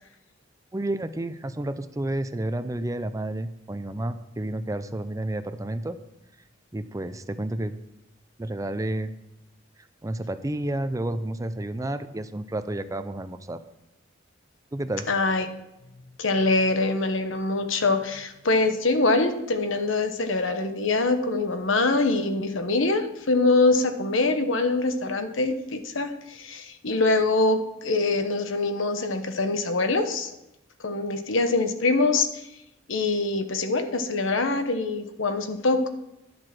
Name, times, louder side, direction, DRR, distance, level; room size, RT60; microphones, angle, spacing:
voice 1, 0.7-6.0 6.7-7.8 8.4-9.1 10.0-13.6 14.7-15.1, right 1 dB, 15° right, 11 dB, 0.5 m, -30 dB
voice 2, 15.1-15.5 16.2-30.3 30.8-32.4 32.9-35.9, left 3 dB, 85° left, 8 dB, 1.1 m, -24 dB
11.0 x 7.7 x 6.1 m, 0.90 s
head